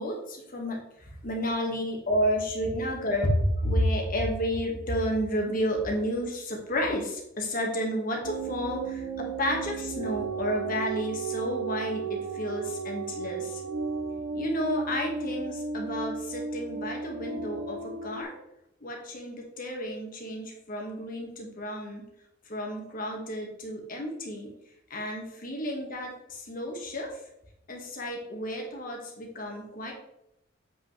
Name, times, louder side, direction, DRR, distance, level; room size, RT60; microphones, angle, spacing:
voice 1, 0.0-13.6 14.3-18.4 18.8-22.0 22.5-24.5 24.9-27.2 27.7-29.9, equal, 45° left, 1 dB, 1.8 m, -31 dB
sound 1, 8.2-18.2, right 5 dB, 75° right, 0.9 m, -34 dB
8.6 x 5.6 x 3.3 m, 0.82 s
head